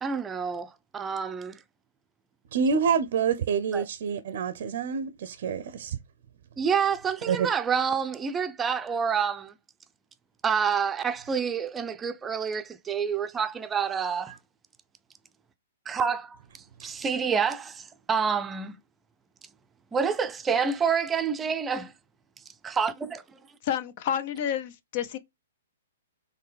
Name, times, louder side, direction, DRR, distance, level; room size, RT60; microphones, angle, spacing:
voice 1, 0.0-1.6 3.7-3.8 6.6-9.5 10.4-14.3 15.9-16.4 16.8-18.7 19.9-21.9 22.6-23.2, right 6 dB, 15° right, 0.6 m, -28 dB
voice 2, 2.5-6.0 7.3-7.5 16.8-16.9, right 6 dB, 55° right, 0.6 m, -27 dB
voice 3, 23.6-25.2, left 9 dB, 45° left, 0.7 m, -29 dB
4.5 x 3.4 x 3.3 m
figure-of-eight pair, 120°, 0 cm